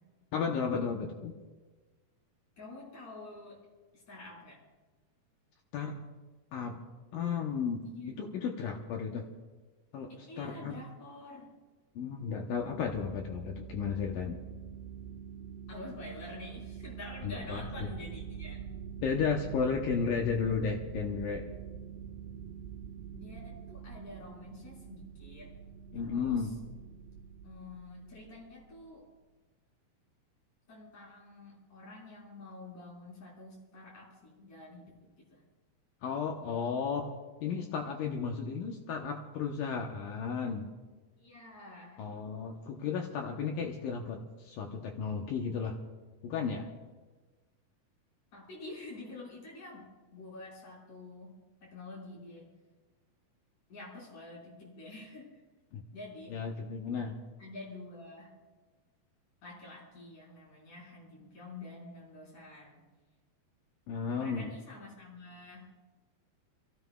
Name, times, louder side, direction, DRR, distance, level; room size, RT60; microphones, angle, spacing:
voice 1, 0.3-1.4 5.7-6.0 6.5-6.8 7.1-9.3 9.9-10.8 12.0-14.4 17.2-17.9 19.0-21.5 25.9-26.5 36.0-37.1 37.4-40.7 42.0-45.8 46.2-46.7 55.7-55.8 56.3-57.2 63.9-64.5, left 6 dB, 75° left, 2 dB, 2.3 m, -34 dB
voice 2, 2.6-3.6 4.1-4.6 8.0-8.2 10.3-11.5 15.7-18.6 23.1-25.5 26.0-26.4 27.4-29.0 30.7-34.9 35.3-35.4 41.2-42.0 48.3-51.3 51.6-52.5 53.7-55.4 55.9-56.4 57.4-58.3 59.4-62.8 64.2-65.7, left 2 dB, 50° left, -5 dB, 6.2 m, -48 dB
sound 1, 12.6-28.8, right 8 dB, 75° right, 3.0 m, -45 dB
29.5 x 15.5 x 2.3 m, 1.3 s
omnidirectional pair, 4.6 m